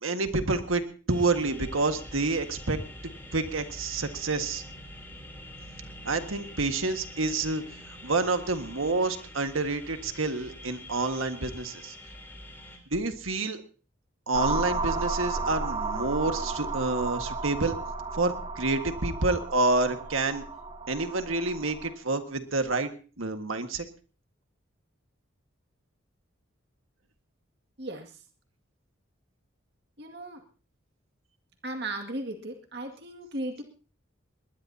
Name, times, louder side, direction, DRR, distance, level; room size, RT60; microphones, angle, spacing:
voice 1, 0.0-0.8 1.1-2.8 3.3-4.6 6.0-7.6 8.0-11.9 12.9-13.6 14.3-17.8 18.1-20.4 20.9-22.9 23.2-23.8, right 3 dB, 85° right, 7 dB, 1.7 m, -28 dB
sound 1, 1.1-12.8, left 1 dB, 10° left, 3.5 m, -45 dB
sound 2, 14.3-21.9, right 3 dB, 25° right, 1.4 m, -33 dB
voice 2, 27.8-28.1 30.0-30.4 31.6-33.6, right 1 dB, 55° right, 4 dB, 2.2 m, -36 dB
21.0 x 20.0 x 2.8 m, 0.37 s
head